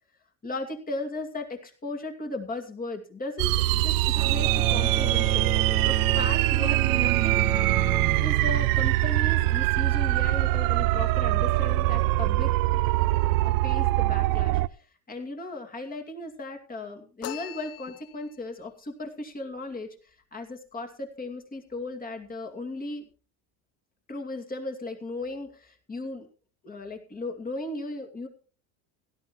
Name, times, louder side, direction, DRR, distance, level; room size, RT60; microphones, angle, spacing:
voice 1, 0.4-5.5 5.8-7.5 8.2-12.5 13.4-23.0 24.1-26.3 26.6-28.3, left 2 dB, 20° left, 4 dB, 2.5 m, -36 dB
sound 1, 3.4-14.7, right 18 dB, 55° right, 0.5 m, -23 dB
Bowed string instrument, 4.2-9.6, right 6 dB, 10° right, 0.8 m, -32 dB
sound 2, 17.2-18.5, left 17 dB, 40° left, 0.5 m, -40 dB
16.5 x 12.5 x 3.1 m, 0.37 s
supercardioid pair, 125°, 41 cm